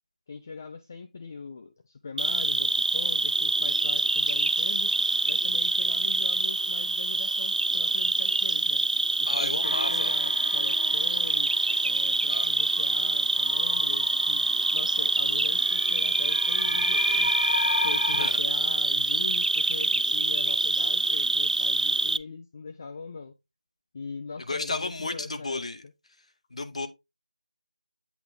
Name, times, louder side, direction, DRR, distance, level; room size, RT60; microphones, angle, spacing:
voice 1, 0.3-4.9 5.3-8.9 9.2-11.5 11.8-14.5 14.7-17.3 17.8-23.3 23.9-25.6, left 4 dB, 25° left, 0.4 m, -41 dB
Cricket, 2.2-22.2, right 2 dB, 75° right, 0.4 m, -25 dB
voice 2, 9.3-10.2 12.3-12.5 18.1-18.4 24.5-25.8 26.5-26.9, left 3 dB, 55° left, 0.7 m, -33 dB
sound 1, 9.6-18.3, left 1 dB, 80° left, 2.3 m, -34 dB
8.0 x 3.5 x 3.7 m
figure-of-eight pair, 170°, 4 cm